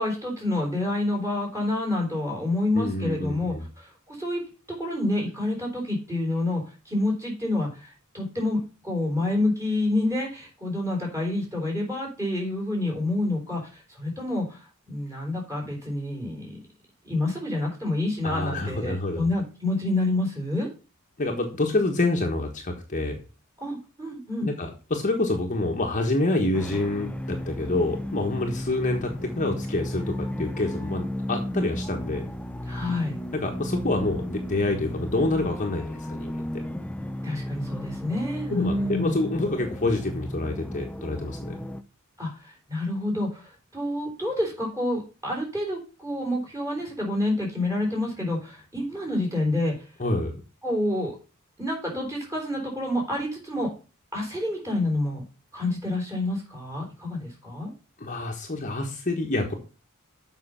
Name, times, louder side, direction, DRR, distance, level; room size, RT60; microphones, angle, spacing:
voice 1, 0.0-4.4 4.8-16.6 17.0-20.7 23.6-24.5 32.7-33.2 37.2-39.2 42.2-49.9 50.6-51.2 51.6-53.7 54.1-55.2 55.5-57.7, left 1 dB, 15° right, -1 dB, 4.2 m, -28 dB
voice 2, 2.7-3.6 18.2-19.2 21.2-23.2 24.4-32.3 33.3-36.6 38.5-41.6 50.0-50.4 58.0-59.5, left 2 dB, 35° left, 2 dB, 1.3 m, -27 dB
sound 1, 26.5-41.8, equal, 5° left, 0.4 m, -34 dB
7.7 x 5.5 x 5.7 m, 0.34 s
head